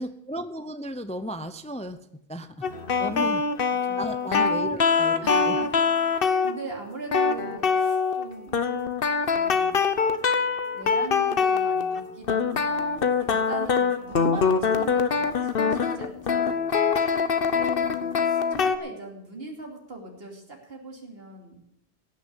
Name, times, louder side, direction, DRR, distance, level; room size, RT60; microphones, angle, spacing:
voice 1, 0.0-2.0 2.3-2.7 3.0-3.4 4.0-5.6, equal, 10° left, 10 dB, 0.6 m, -34 dB
sound 1, 2.6-6.6 7.1-8.2 8.5-12.0 12.3-18.8, left 5 dB, 65° left, 1.1 m, -24 dB
voice 2, 2.6-3.3 3.8-4.0 5.2-5.7 5.9-8.7 9.3-9.8 10.7-16.8 17.8-21.6, right 2 dB, 70° right, 1 dB, 3.1 m, -41 dB
17.0 x 6.7 x 8.4 m, 0.77 s
omnidirectional pair, 1.0 m